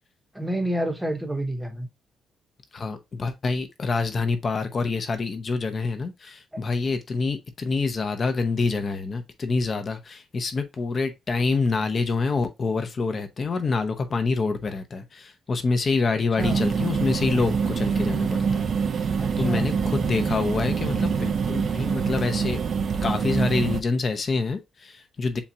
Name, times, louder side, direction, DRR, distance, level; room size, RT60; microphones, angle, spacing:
voice 1, 0.3-1.9 16.1-16.6 19.2-19.7, right 1 dB, 5° right, 0.9 m, -29 dB
voice 2, 2.7-22.6 23.0-25.4, left 4 dB, 30° left, 0.7 m, -26 dB
sound 1, 16.4-23.8, right 6 dB, 45° right, 0.4 m, -25 dB
7.0 x 2.4 x 2.7 m
cardioid pair, 155°, 0 cm